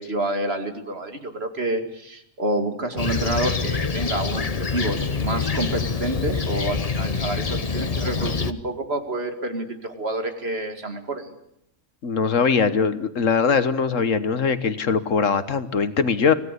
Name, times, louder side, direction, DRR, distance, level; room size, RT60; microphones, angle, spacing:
voice 1, 0.0-11.3, right 2 dB, 50° right, 6 dB, 2.4 m, -28 dB
Fixed-wing aircraft airplane, 3.0-8.5, left 5 dB, 30° left, 0.9 m, -26 dB
voice 2, 12.0-16.3, left 5 dB, 75° left, 12 dB, 1.6 m, -21 dB
25.5 x 17.0 x 8.2 m, 0.74 s
omnidirectional pair, 1.3 m